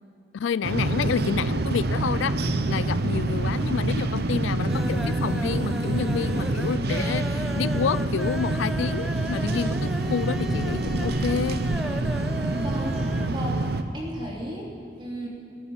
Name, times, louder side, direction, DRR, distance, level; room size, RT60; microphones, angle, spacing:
voice 1, 0.3-2.4 2.7-11.6, left 6 dB, 85° left, 19 dB, 0.3 m, -29 dB
sound 1, 0.6-13.8, right 2 dB, 55° right, 0.7 m, -26 dB
sound 2, 2.9-3.2 3.5-4.1 4.4-13.4 13.7-13.8 14.1-14.2, equal, ahead, 0.3 m, -36 dB
voice 2, 12.5-13.0 13.3-15.3, equal, 25° right, -2 dB, 3.0 m, -35 dB
18.0 x 10.0 x 7.2 m, 2.6 s
head